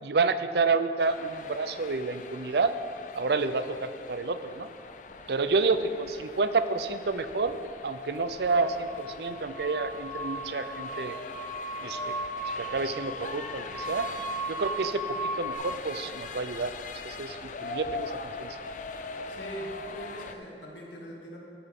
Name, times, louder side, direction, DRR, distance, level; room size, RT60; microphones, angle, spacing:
voice 1, 0.0-2.8 3.1-4.7 5.3-7.6 7.8-11.2 11.8-12.1 12.6-14.1 14.5-16.7 17.0-18.6, right 4 dB, 60° right, 11 dB, 0.5 m, -29 dB
sound 1, 1.0-20.3, left 4 dB, 45° left, 0.5 m, -42 dB
sound 2, 8.4-15.5, right 1 dB, 30° right, 2.2 m, -36 dB
voice 2, 19.3-21.4, right 1 dB, 80° left, -3 dB, 2.3 m, -41 dB
14.5 x 9.8 x 3.7 m, 2.5 s
head